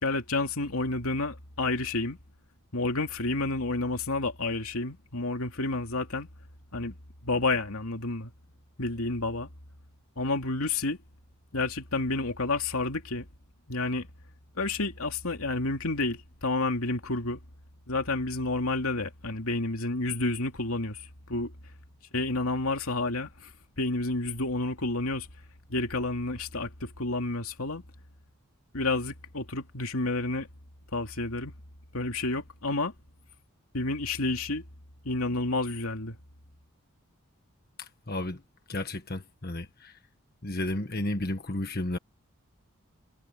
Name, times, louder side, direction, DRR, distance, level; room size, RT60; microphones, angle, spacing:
voice 1, 0.0-2.2 2.7-6.3 6.7-6.9 7.2-8.3 8.8-9.5 10.2-11.0 11.5-13.3 13.7-14.1 14.6-17.4 17.9-21.5 22.1-23.5 23.8-25.3 25.7-27.8 28.7-30.5 30.9-31.5 31.9-32.9 33.7-34.6 35.0-36.2, left 2 dB, 80° left, 2.8 m, -30 dB
voice 2, 37.8-38.4 38.7-40.0 40.4-42.0, left 1 dB, 45° left, 1.5 m, -33 dB
head